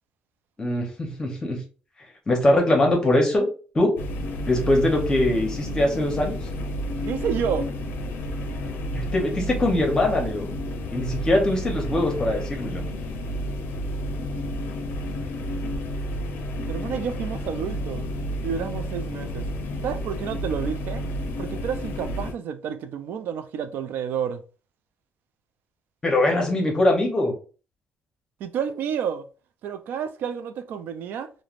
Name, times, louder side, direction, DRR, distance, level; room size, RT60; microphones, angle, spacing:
voice 1, 0.6-1.6 2.3-3.5 3.7-4.0 4.5-6.4 8.9-10.5 10.9-12.8 26.0-27.3, left 1 dB, 20° left, 0.7 m, -22 dB
sound 1, 4.0-22.3, equal, 70° left, 0.4 m, -31 dB
voice 2, 7.1-7.7 14.2-14.3 16.7-18.1 18.4-19.5 19.8-21.0 21.4-24.4 28.4-29.2 29.6-31.3, right 7 dB, 65° right, 0.3 m, -30 dB
3.1 x 2.1 x 2.4 m
cardioid pair, 155°, 4 cm